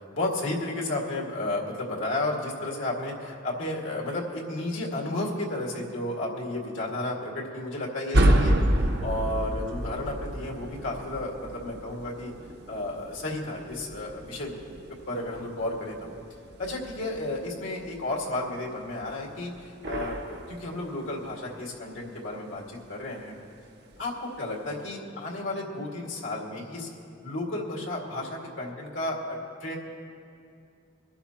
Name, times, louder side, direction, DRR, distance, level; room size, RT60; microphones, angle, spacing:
voice 1, 0.1-12.3 12.7-14.5 15.1-16.1 16.6-23.3 24.0-26.9 27.2-29.8, left 2 dB, 85° left, -2 dB, 2.1 m, -32 dB
sound 1, 8.1-18.4 18.7-21.3 21.7-21.8 22.4-22.9 23.2-23.3 23.9-24.0, right 1 dB, 55° right, 0.8 m, -30 dB
22.5 x 12.0 x 2.9 m, 2.4 s
head